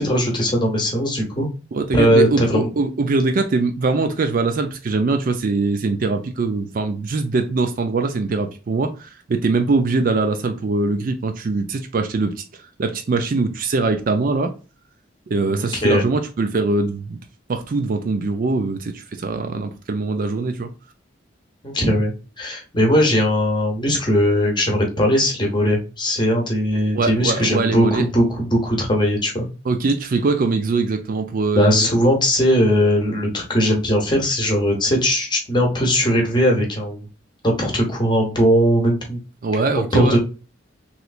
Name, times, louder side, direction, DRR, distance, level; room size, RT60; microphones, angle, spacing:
voice 1, 0.0-1.5 1.9-2.7 15.5-16.0 21.6-29.5 31.6-37.1 37.4-39.2 39.9-40.2, equal, 25° left, 0.9 m, -19 dB
voice 2, 1.7-12.3 12.8-14.5 15.3-17.2 17.5-20.7 26.9-28.1 29.7-31.9 39.4-40.2, right 3 dB, 45° right, 0.4 m, -22 dB
3.2 x 3.0 x 2.4 m
head